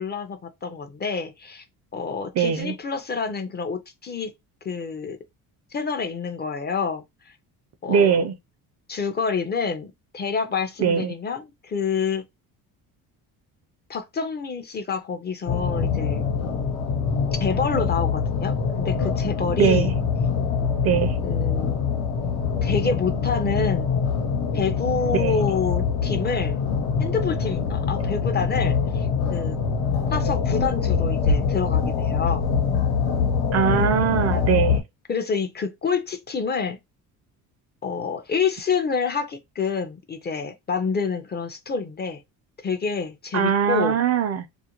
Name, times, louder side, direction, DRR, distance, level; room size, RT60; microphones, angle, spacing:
voice 1, 0.0-1.6 1.9-4.3 4.6-5.2 5.7-7.4 7.8-8.3 8.9-12.2 13.9-16.3 17.4-19.9 21.2-21.8 22.6-23.9 24.5-26.6 27.0-29.6 30.1-32.5 35.1-36.8 37.8-42.2 42.6-44.0, left 5 dB, 25° left, 0.4 m, -28 dB
voice 2, 2.4-2.7 7.9-8.3 10.8-11.1 19.6-19.9 20.8-21.1 25.1-25.4 33.5-34.8 43.3-44.5, right 7 dB, 45° right, 0.4 m, -21 dB
sound 1, 15.5-34.8, left 6 dB, 75° left, 0.9 m, -24 dB
2.4 x 2.2 x 2.9 m
cardioid pair, 105°, 38 cm